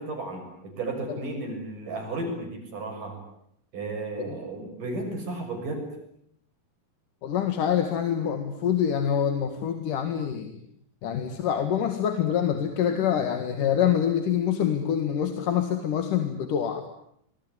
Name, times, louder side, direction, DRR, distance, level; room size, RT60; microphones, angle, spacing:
voice 1, 0.0-3.2 3.7-5.9, right 2 dB, 75° right, 3 dB, 8.3 m, -34 dB
voice 2, 7.2-10.5 11.0-16.9, left 9 dB, 75° left, 7 dB, 3.4 m, -26 dB
26.0 x 22.0 x 9.7 m, 0.73 s
omnidirectional pair, 3.7 m